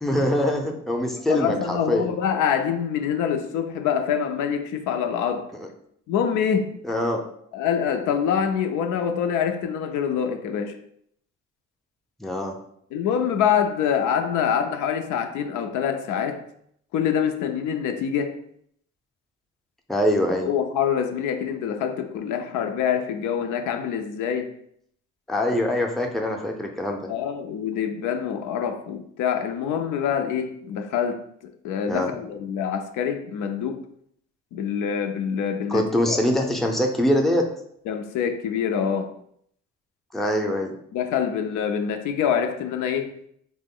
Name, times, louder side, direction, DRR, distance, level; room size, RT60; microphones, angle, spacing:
voice 1, 0.0-2.1 6.8-7.2 12.2-12.5 19.9-20.5 25.3-27.1 31.9-32.1 35.7-37.5 40.1-40.7, left 1 dB, ahead, 0.5 m, -23 dB
voice 2, 1.1-5.5 6.1-6.8 7.5-10.8 12.9-16.4 16.9-18.4 20.4-24.5 27.1-31.2 31.6-33.8 34.5-36.2 37.9-39.1 40.9-43.2, left 8 dB, 90° left, 0.4 m, -25 dB
3.6 x 2.0 x 3.6 m
cardioid pair, 90°, 30 cm